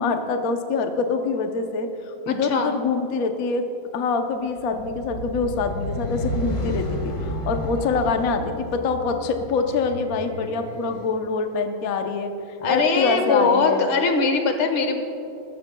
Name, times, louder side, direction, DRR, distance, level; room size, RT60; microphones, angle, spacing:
voice 1, 0.0-3.6 3.9-12.3 12.7-13.9, left 4 dB, 55° left, 5 dB, 1.0 m, -25 dB
voice 2, 2.3-2.7 12.6-14.9, left 4 dB, 85° left, 5 dB, 2.1 m, -21 dB
sound 1, 4.6-11.0, equal, 40° left, 2.2 m, -31 dB
21.0 x 13.5 x 2.3 m, 2.8 s
omnidirectional pair, 2.2 m